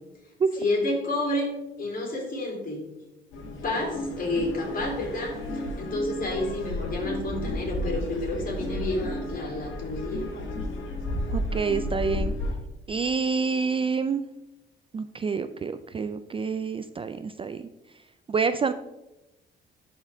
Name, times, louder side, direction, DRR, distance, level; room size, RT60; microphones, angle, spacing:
voice 1, 0.6-1.5 1.8-2.8 3.6-5.4 5.8-10.2, left 2 dB, 45° left, 0 dB, 3.1 m, -29 dB
sound 1, 3.3-12.5, left 1 dB, 80° left, 1.6 m, -32 dB
voice 2, 11.3-12.3 12.9-14.2 14.9-17.6 18.3-18.7, right 5 dB, 25° right, 11 dB, 0.3 m, -27 dB
12.0 x 4.4 x 3.5 m, 0.96 s
cardioid pair, 90°, 20 cm